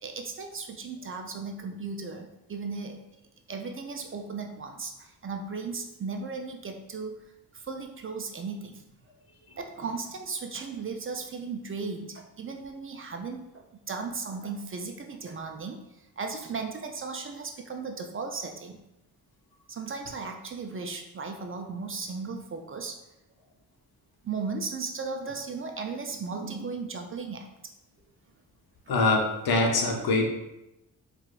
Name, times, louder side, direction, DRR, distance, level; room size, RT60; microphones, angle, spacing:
voice 1, 0.0-3.0 3.5-7.2 7.5-8.8 9.6-18.8 19.7-23.0 24.2-27.7, right 4 dB, 35° right, 4 dB, 0.4 m, -36 dB
voice 2, 28.9-30.3, left 2 dB, 70° left, 2 dB, 0.8 m, -24 dB
4.6 x 2.3 x 2.4 m, 0.90 s
cardioid pair, 75°, 38 cm